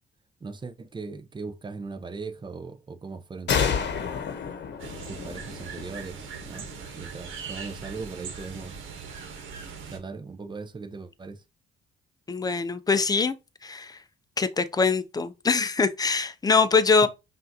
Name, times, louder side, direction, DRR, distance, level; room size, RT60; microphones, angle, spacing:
voice 1, 0.4-3.9 5.1-6.7 6.9-8.9 9.9-11.4 17.0-17.1, right 4 dB, 25° right, 0.6 m, -39 dB
sound 1, 3.5-7.0, left 7 dB, 60° left, 0.9 m, -30 dB
sound 2, 4.8-10.0, right 6 dB, 80° right, 1.0 m, -40 dB
voice 2, 12.3-13.4 13.6-14.0 14.4-17.1, left 4 dB, 20° left, 0.5 m, -23 dB
5.5 x 2.6 x 2.7 m
cardioid pair, 90°, 20 cm